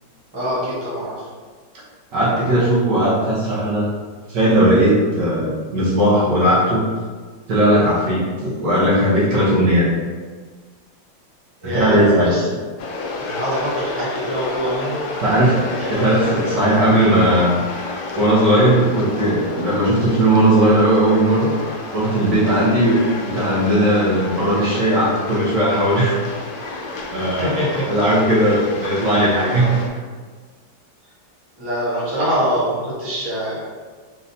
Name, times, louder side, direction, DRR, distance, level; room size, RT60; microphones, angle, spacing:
voice 1, 0.3-1.3 11.6-12.5 13.2-15.0 15.8-16.0 27.2-28.0 31.6-33.6, equal, 15° right, -9 dB, 1.2 m, -24 dB
voice 2, 2.1-3.9 4.3-6.8 7.5-9.9 11.7-12.3 15.2-17.6 18.2-21.5 21.9-26.2 27.1-27.6 27.9-29.8, right 1 dB, 65° right, -7 dB, 1.6 m, -17 dB
sound 1, 12.8-29.9, left 3 dB, 70° left, 1.0 m, -30 dB
4.1 x 3.8 x 2.7 m, 1.5 s
omnidirectional pair, 2.1 m